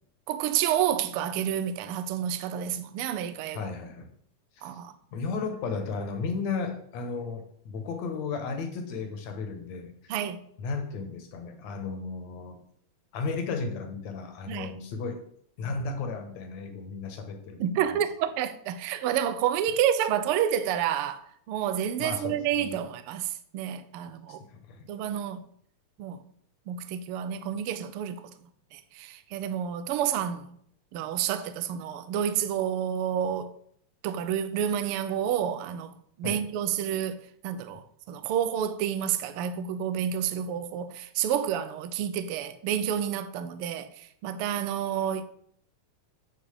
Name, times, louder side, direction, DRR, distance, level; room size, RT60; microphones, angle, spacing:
voice 1, 0.3-3.7 4.6-4.9 10.1-10.4 14.5-14.7 17.6-24.4 24.9-25.4 26.0-26.2 26.7-28.2 28.7-30.6 30.9-33.5 34.0-35.9 36.2-37.2 37.4-45.2, right 9 dB, 90° right, 1.2 m, -29 dB
voice 2, 3.5-4.1 4.6-4.7 5.1-10.1 10.6-12.6 13.1-15.2 15.6-17.6 22.0-22.8 24.4-24.9 36.2-36.5, left 4 dB, 70° left, 2.4 m, -34 dB
8.4 x 4.4 x 7.2 m
omnidirectional pair, 3.3 m